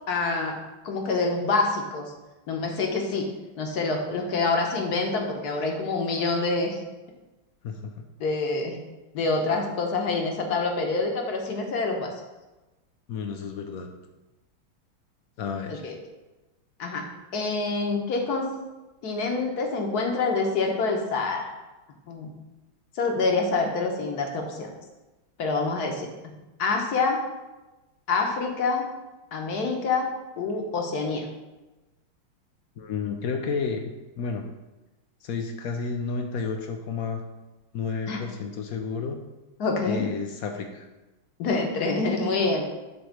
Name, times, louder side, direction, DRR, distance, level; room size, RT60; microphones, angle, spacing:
voice 1, 0.1-0.6 0.8-2.1 2.5-3.3 3.6-6.8 8.2-8.8 9.1-12.1 15.7-16.0 16.8-17.0 17.3-18.5 19.0-21.5 22.1-22.3 22.9-24.7 25.4-26.1 26.6-27.2 28.1-28.8 29.3-31.3 38.1-38.2 39.6-40.1 41.4-42.6, left 3 dB, 55° left, 2 dB, 1.4 m, -26 dB
voice 2, 13.1-13.9 15.4-15.9 32.8-33.9 34.2-34.4 35.2-37.2 37.7-39.2 39.9-40.9, left 5 dB, 75° left, 4 dB, 0.8 m, -31 dB
8.0 x 3.1 x 6.4 m, 1.1 s
omnidirectional pair, 2.2 m